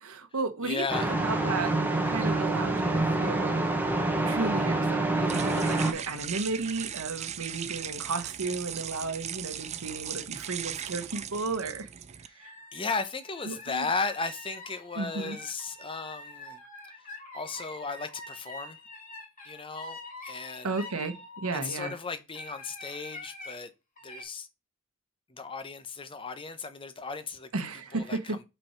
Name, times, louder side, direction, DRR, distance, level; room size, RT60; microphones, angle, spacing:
voice 1, 0.0-1.7 2.1-3.6 4.3-11.9 12.4-12.5 13.5-13.9 15.0-15.4 20.6-21.1 21.4-21.9 27.5-28.4, right 3 dB, 80° right, 1.0 m, -34 dB
voice 2, 0.6-1.1 12.2-12.4 12.7-16.6 17.0-17.1 17.3-18.8 19.4-20.8 21.6-23.7 24.0-24.5 25.3-27.5 27.9-28.5, left 4 dB, 25° left, 0.7 m, -35 dB
sound 1, 0.9-5.9, right 2 dB, 10° right, 0.9 m, -27 dB
sound 2, 3.7-12.3, right 9 dB, 30° right, 0.4 m, -39 dB
sound 3, 12.4-22.0 22.3-23.5 24.0-24.2, left 2 dB, 40° left, 2.5 m, -45 dB
5.5 x 4.5 x 4.5 m
head